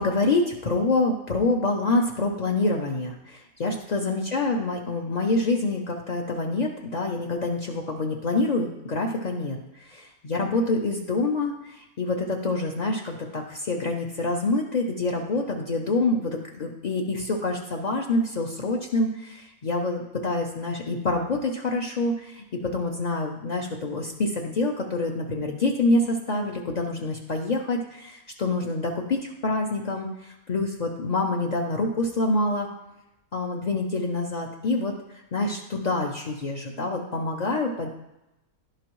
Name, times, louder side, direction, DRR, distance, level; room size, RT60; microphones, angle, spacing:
voice 1, 0.0-22.4 22.7-32.7 33.3-34.9 35.3-37.9, left 2 dB, 75° left, 0 dB, 0.4 m, -26 dB
11.0 x 4.9 x 3.0 m, 0.91 s
omnidirectional pair, 1.6 m